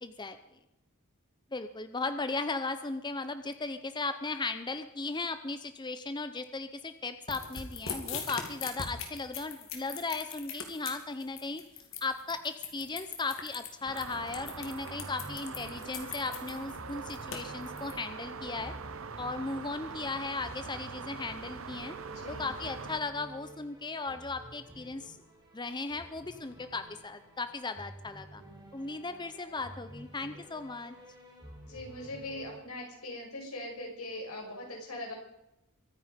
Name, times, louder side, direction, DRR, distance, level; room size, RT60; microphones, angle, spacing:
voice 1, 0.0-0.4 1.5-11.6 12.0-18.7 19.2-22.0 22.3-25.2 25.5-28.4 28.7-30.9, left 3 dB, 20° left, 10 dB, 0.7 m, -37 dB
sound 1, 7.3-17.9, left 6 dB, 60° left, 2.8 m, -40 dB
sound 2, 13.9-23.0, right 5 dB, 65° right, 0.8 m, -43 dB
sound 3, 14.1-32.6, right 1 dB, 20° right, 4.0 m, -51 dB
voice 2, 22.1-22.5 31.6-35.1, left 1 dB, 85° left, 0 dB, 6.1 m, -41 dB
23.5 x 9.9 x 5.2 m, 0.90 s
head